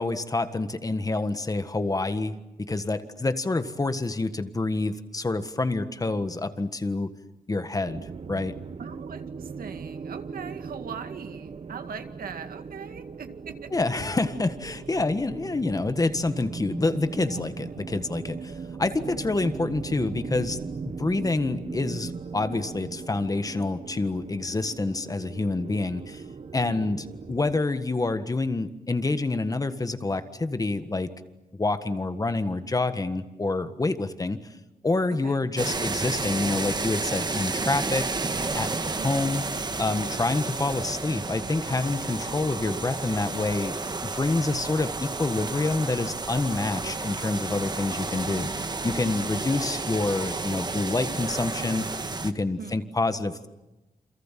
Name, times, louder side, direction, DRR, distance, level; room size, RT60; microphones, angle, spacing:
voice 1, 0.0-2.4 2.7-7.1 7.5-8.6 13.7-26.2 26.5-31.1 31.5-34.4 34.8-38.3 38.5-38.7 39.0-39.4 39.8-53.5, left 3 dB, 25° left, 10 dB, 1.6 m, -27 dB
sound 1, 7.8-27.6, right 5 dB, 45° right, 1.0 m, -39 dB
voice 2, 8.8-13.7 26.6-27.0 35.2-35.3 52.6-52.8, right 6 dB, 80° right, 7 dB, 2.2 m, -41 dB
sound 2, 35.6-52.3, right 3 dB, 30° right, 1.6 m, -31 dB
29.0 x 27.5 x 7.6 m, 1.0 s
wide cardioid pair, 135°, 15 cm